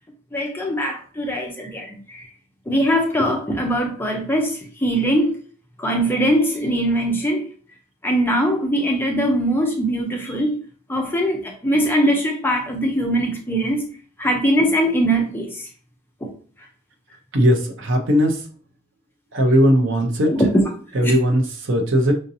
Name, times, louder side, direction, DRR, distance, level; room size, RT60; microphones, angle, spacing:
voice 1, 0.3-2.2 2.7-4.5 4.8-5.4 5.8-7.5 8.0-10.6 10.9-13.9 14.2-15.6 16.2-16.3 20.3-20.7 21.0-21.1, equal, 10° left, 0.5 m, -21 dB
voice 2, 17.3-18.4 19.3-20.3 20.9-22.1, equal, 55° right, 0.6 m, -18 dB
5.0 x 2.7 x 2.6 m
head